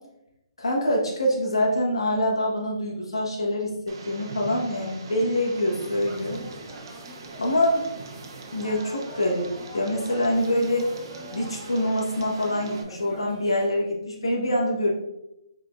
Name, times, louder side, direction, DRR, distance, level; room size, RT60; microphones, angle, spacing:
voice 1, 0.6-6.4 7.4-7.8 8.5-10.9 11.3-14.9, left 1 dB, 85° left, -2 dB, 1.4 m, -25 dB
Tick, 3.9-12.8, right 3 dB, 55° right, 0.7 m, -42 dB
sound 1, 5.8-13.7, equal, 20° right, 1.1 m, -44 dB
5.1 x 3.7 x 2.6 m, 0.85 s
hypercardioid pair, 140°, 3 cm